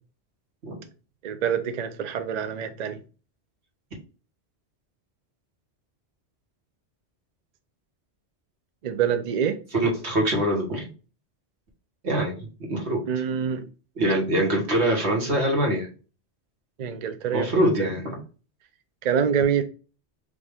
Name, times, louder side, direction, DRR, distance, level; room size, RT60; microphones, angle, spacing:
voice 1, 1.2-3.0 8.8-9.6 13.1-13.7 16.8-17.6 19.0-19.6, right 8 dB, 55° right, 0.5 m, -26 dB
voice 2, 9.7-10.9 12.0-12.4 12.7-13.0 14.0-15.9 17.3-18.2, right 1 dB, 70° right, 1.6 m, -24 dB
5.0 x 2.6 x 3.4 m
omnidirectional pair, 1.1 m